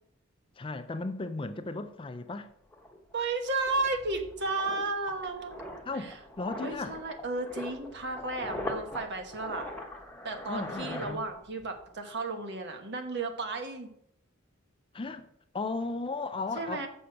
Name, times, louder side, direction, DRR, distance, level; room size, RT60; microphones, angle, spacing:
voice 1, 0.6-2.5 5.9-6.9 10.5-11.2 14.9-15.3 15.5-16.9, left 3 dB, 25° left, 0.4 m, -35 dB
sound 1, 2.7-11.8 12.0-12.3, left 1 dB, 5° left, 1.1 m, -42 dB
voice 2, 3.1-5.7 5.9-6.2 6.6-9.7 10.2-13.9 16.5-16.9, right 3 dB, 55° right, 1.2 m, -33 dB
6.6 x 6.4 x 5.7 m
head